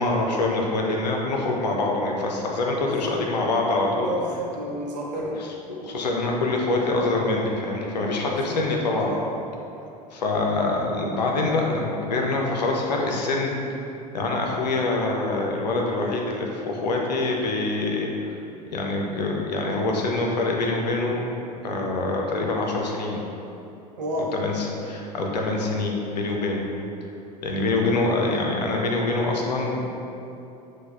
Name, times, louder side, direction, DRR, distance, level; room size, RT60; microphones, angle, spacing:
voice 1, 0.0-4.1 5.4-9.1 10.1-13.6 14.1-18.3 18.7-21.2 21.6-23.2 24.3-26.6 27.4-29.8, left 2 dB, 85° left, 0 dB, 0.6 m, -25 dB
voice 2, 2.8-3.2 3.9-5.3 8.2-9.2 24.0-24.3, equal, 85° right, -2 dB, 0.7 m, -31 dB
6.0 x 2.3 x 2.3 m, 2.8 s
hypercardioid pair, 80°, 21 cm